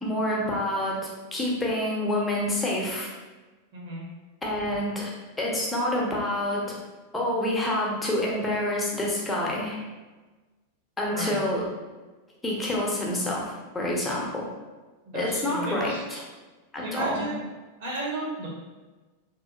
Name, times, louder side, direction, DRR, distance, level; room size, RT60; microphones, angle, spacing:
voice 1, 0.0-3.1 4.4-5.1 5.4-6.8 7.1-9.8 11.0-11.6 12.4-14.5 15.1-16.2 16.7-17.2, left 1 dB, 10° left, -3 dB, 0.7 m, -27 dB
voice 2, 3.7-4.0 11.1-11.4 15.1-16.0 16.8-17.4 17.8-18.5, right 2 dB, 50° right, -5 dB, 1.1 m, -33 dB
2.9 x 2.9 x 2.4 m, 1.2 s
figure-of-eight pair, 90°, 0 cm